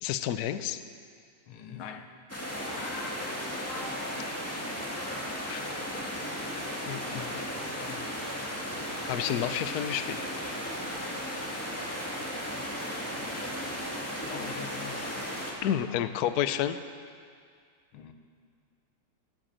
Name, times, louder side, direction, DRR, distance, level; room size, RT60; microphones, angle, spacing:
voice 1, 0.0-0.8 5.5-5.6 6.9-7.0 9.1-10.2 15.6-16.8, left 10 dB, 70° left, 11 dB, 0.9 m, -30 dB
voice 2, 1.5-2.1 7.1-8.2 12.0-12.1 14.2-15.4 15.7-16.2 17.9-18.1, left 8 dB, 85° left, 7 dB, 1.9 m, -44 dB
sound 1, 2.3-15.5, equal, 5° left, 2.0 m, -35 dB
sound 2, 2.5-6.4 6.7-7.6 7.9-10.6 11.5-11.8, left 2 dB, 45° left, 1.4 m, -47 dB
14.0 x 9.2 x 8.9 m, 2.1 s
omnidirectional pair, 2.2 m